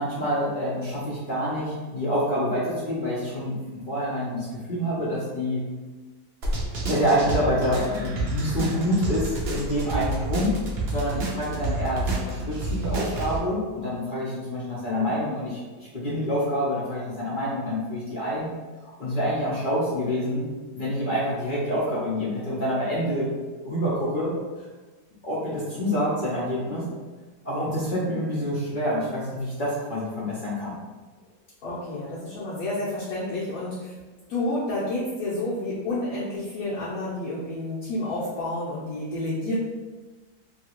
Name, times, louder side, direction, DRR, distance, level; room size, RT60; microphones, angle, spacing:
voice 1, 0.0-3.5 3.9-5.6 6.9-10.6 10.9-18.5 18.8-20.5 20.7-23.3 23.6-24.3 24.6-24.7 25.2-26.8 27.4-30.7, equal, 45° left, -9 dB, 0.7 m, -27 dB
sound 1, 6.4-13.4, right 2 dB, 65° right, 0.6 m, -29 dB
voice 2, 31.6-34.0 34.3-39.5, left 2 dB, 65° left, -9 dB, 1.1 m, -30 dB
2.9 x 2.8 x 2.9 m, 1.3 s
omnidirectional pair, 1.8 m